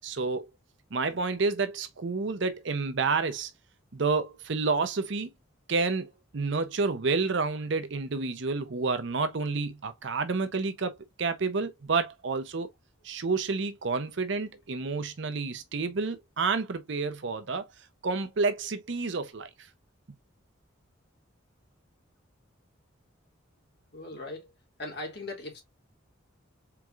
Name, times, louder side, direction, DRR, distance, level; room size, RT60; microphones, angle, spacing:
voice 1, 0.0-0.5 0.9-3.5 3.9-5.3 5.7-12.7 13.0-17.7 18.0-19.5, right 4 dB, 60° right, 0.6 m, -29 dB
voice 2, 23.9-24.5 24.8-25.6, left 2 dB, 50° left, 1.9 m, -38 dB
4.6 x 3.7 x 2.3 m
head